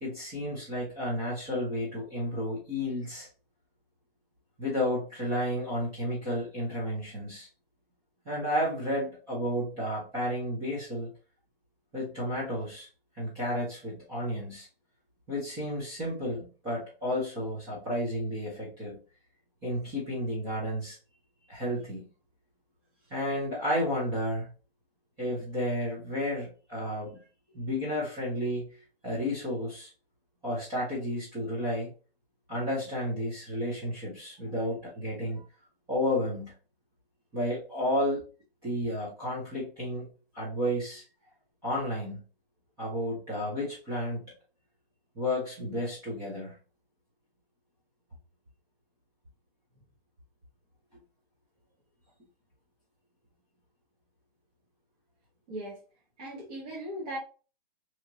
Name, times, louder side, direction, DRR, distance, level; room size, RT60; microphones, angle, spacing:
voice 1, 0.0-3.3 4.6-7.5 8.3-11.1 11.9-12.9 13.2-14.7 15.3-19.0 19.6-21.0 21.5-22.0 23.1-24.5 25.2-27.2 27.5-28.7 29.0-29.9 30.4-31.9 32.5-35.4 35.9-36.5 37.3-38.2 38.6-40.1 40.3-41.0 41.6-42.2 42.8-44.3 45.2-46.5, equal, 10° right, 0.6 m, -32 dB
voice 2, 56.2-57.2, right 1 dB, 40° right, 1.2 m, -38 dB
2.9 x 2.8 x 2.5 m
hypercardioid pair, 150°, 30 cm